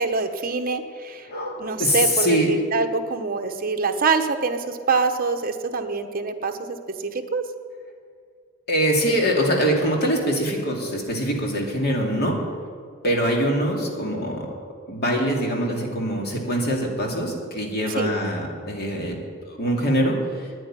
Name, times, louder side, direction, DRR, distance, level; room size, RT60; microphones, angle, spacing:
voice 1, 0.0-1.3 1.6-6.8 7.0-7.4 18.0-18.1, right 4 dB, 45° right, 6 dB, 1.0 m, -25 dB
voice 2, 1.3-2.5 8.7-12.4 13.0-14.5 14.9-19.2 19.4-20.2, equal, 50° left, 0 dB, 2.5 m, -23 dB
9.7 x 8.9 x 10.0 m, 2.2 s
head